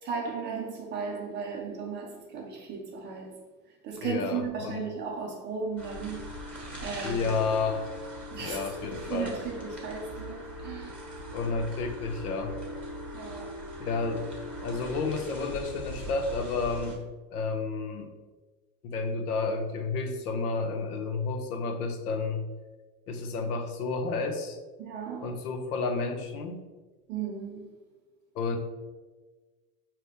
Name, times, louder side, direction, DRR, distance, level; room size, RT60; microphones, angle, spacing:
voice 1, 0.0-3.3 3.8-6.2 6.8-7.4 8.3-11.0 13.1-13.5 24.8-25.3 27.1-27.7, right 5 dB, 25° right, 1 dB, 0.5 m, -36 dB
voice 2, 4.0-4.9 7.0-7.9 8.4-9.3 11.3-12.6 13.8-14.3 14.6-17.0 17.3-18.1 18.8-22.4 23.1-24.6 25.2-26.6 28.3-28.6, left 4 dB, 70° left, 6 dB, 0.8 m, -31 dB
sound 1, 5.8-17.0, equal, ahead, 1.2 m, -40 dB
5.1 x 2.9 x 3.2 m, 1.3 s
hypercardioid pair, 115°, 47 cm